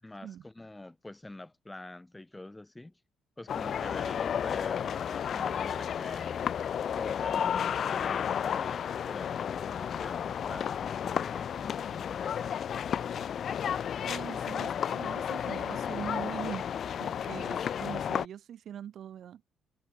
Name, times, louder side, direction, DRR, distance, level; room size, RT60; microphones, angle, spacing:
voice 1, 0.0-2.9 3.4-6.4 7.0-13.6, left 2 dB, 10° left, 4.5 m, -46 dB
sound 1, 3.5-18.3, left 8 dB, 60° left, 0.8 m, -32 dB
voice 2, 14.1-16.7 17.0-19.4, right 10 dB, 65° right, 5.9 m, -42 dB
cardioid pair, 90°, 0 cm